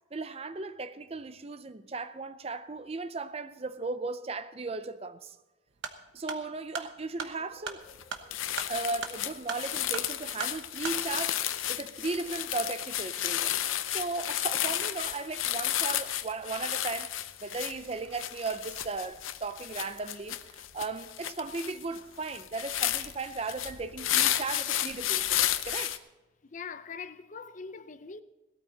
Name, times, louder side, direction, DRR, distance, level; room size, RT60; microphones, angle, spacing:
voice 1, 0.1-5.4 6.1-7.8 8.7-25.9, right 3 dB, 30° right, 0.5 m, -36 dB
sound 1, 5.7-11.0, right 5 dB, 70° right, 1.1 m, -40 dB
Laughter, 7.2-14.9, equal, 5° right, 4.4 m, -60 dB
sound 2, 7.9-8.0 8.3-26.0, left 12 dB, 85° left, 0.7 m, -32 dB
voice 2, 26.5-28.2, left 5 dB, 40° left, 0.5 m, -42 dB
17.5 x 12.5 x 4.0 m
head